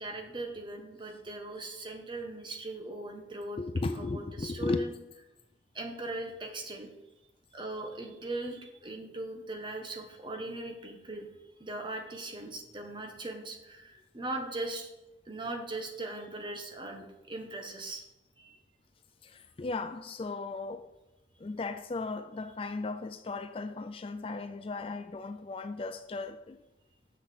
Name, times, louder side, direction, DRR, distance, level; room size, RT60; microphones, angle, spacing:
voice 1, 0.0-3.6 3.9-4.9 5.7-6.9 7.5-11.3 11.6-14.9 15.3-18.0 18.4-18.6, right 2 dB, 25° right, 1.3 m, -39 dB
voice 2, 3.6-4.9 19.2-20.9 21.4-26.6, left 3 dB, 30° left, 0.3 m, -36 dB
7.3 x 6.6 x 6.1 m
head